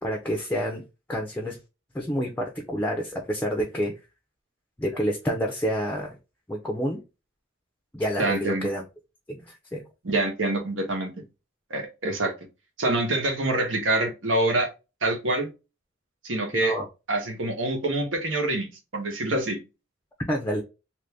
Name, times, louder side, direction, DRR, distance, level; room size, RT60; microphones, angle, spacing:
voice 1, 0.0-0.8 1.1-1.6 1.9-3.9 4.8-6.1 6.5-7.0 7.9-8.8 9.3-9.4 9.7-9.8 16.5-16.9 20.3-20.6, equal, 10° left, 2 dB, 0.5 m, -28 dB
voice 2, 8.2-8.7 10.0-11.1 11.7-12.3 12.8-14.7 15.0-15.5 16.2-16.8 17.1-19.6, right 2 dB, 90° right, 3 dB, 1.1 m, -26 dB
3.0 x 2.6 x 3.3 m, 0.28 s
head